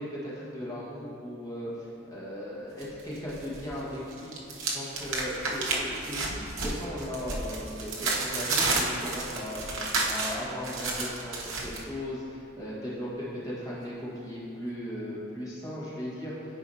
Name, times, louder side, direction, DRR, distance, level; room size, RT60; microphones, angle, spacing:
voice 1, 0.0-4.3 4.7-16.6, equal, 20° left, -8 dB, 1.4 m, -37 dB
sound 1, 2.8-3.7 3.9-11.8, right 3 dB, 80° right, 0.9 m, -31 dB
10.5 x 4.8 x 2.8 m, 2.7 s
head